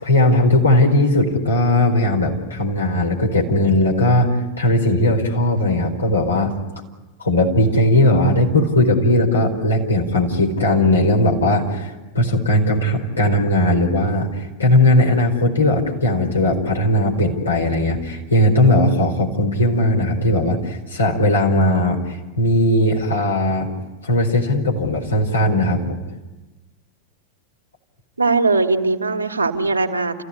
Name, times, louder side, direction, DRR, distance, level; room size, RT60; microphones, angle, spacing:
voice 1, 0.0-6.5 7.2-23.7 24.0-26.0, left 1 dB, 75° left, 1 dB, 4.4 m, -18 dB
voice 2, 28.2-30.2, right 3 dB, 80° right, 2 dB, 1.7 m, -20 dB
30.0 x 15.5 x 9.8 m, 1.2 s
figure-of-eight pair, 90°, 0 cm